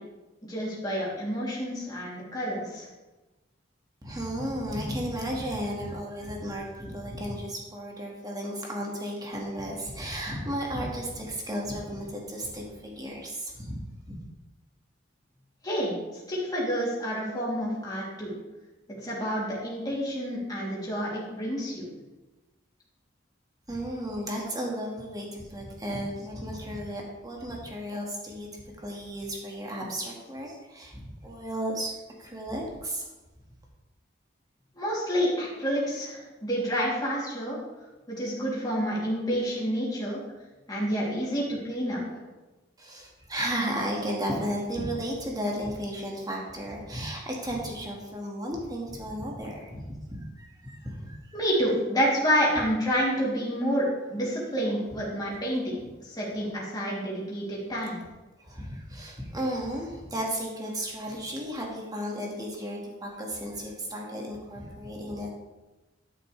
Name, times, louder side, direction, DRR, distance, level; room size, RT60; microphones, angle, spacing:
voice 1, 0.4-2.9 15.6-15.9 16.3-18.3 19.0-21.9 34.8-37.6 38.1-40.2 40.7-42.2 51.3-58.0, equal, 20° left, -5 dB, 2.9 m, -29 dB
voice 2, 4.0-13.8 14.1-14.2 23.7-31.9 32.2-33.1 42.8-51.5 54.7-55.0 58.4-65.3, equal, 20° right, -1 dB, 1.7 m, -34 dB
12.0 x 6.6 x 3.3 m, 1.1 s
head